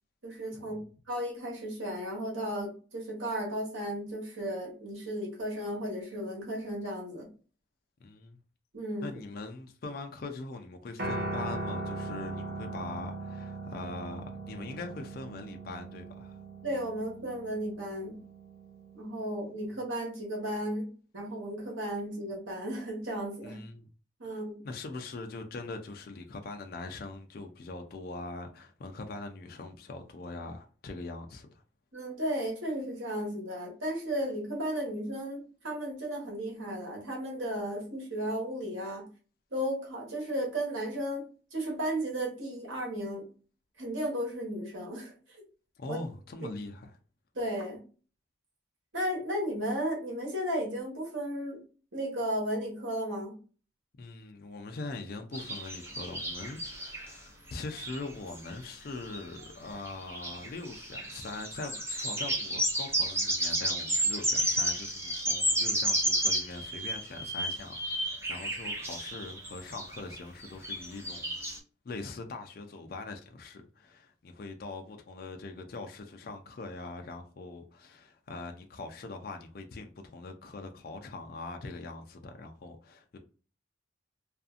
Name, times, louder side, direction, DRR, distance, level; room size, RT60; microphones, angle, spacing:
voice 1, 0.2-0.8 1.1-7.3 8.7-9.2 16.6-18.2 18.9-20.9 21.1-23.6 24.2-24.6 31.9-39.0 39.5-43.3 43.8-45.4 45.9-46.0 47.3-47.8 48.9-51.6 51.9-53.3, equal, 85° right, 1.2 m, -34 dB
voice 2, 8.0-8.4 9.0-16.4 23.4-23.9 24.3-31.6 45.8-47.0 54.0-71.4 71.8-83.2, left 3 dB, 50° left, 0.3 m, -42 dB
Piano, 11.0-19.3, right 2 dB, 50° right, 0.6 m, -39 dB
sound 1, 55.3-57.1 57.5-57.6 57.8-58.0 58.3-58.5 59.1-59.5 59.9-71.6, right 1 dB, 15° right, 0.6 m, -32 dB
2.5 x 2.4 x 2.4 m
head